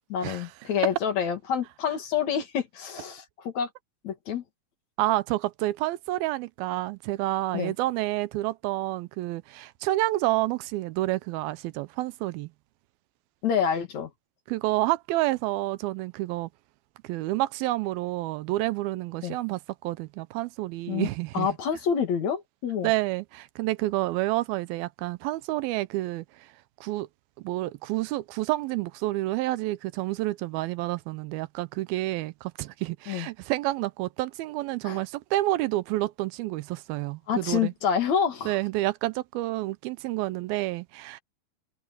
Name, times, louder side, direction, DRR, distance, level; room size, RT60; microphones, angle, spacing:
voice 1, 0.1-3.7 4.0-4.4 7.5-7.7 13.4-14.1 19.2-19.4 20.9-21.1 21.3-22.9 33.1-33.3 34.8-35.0 37.3-38.6, left 7 dB, 55° left, 2.8 m, -27 dB
voice 2, 5.0-12.5 14.5-16.5 17.0-21.5 22.8-26.5 26.8-27.1 27.4-37.7 38.5-41.2, right 17 dB, 85° right, 2.5 m, -29 dB
omnidirectional pair, 4.3 m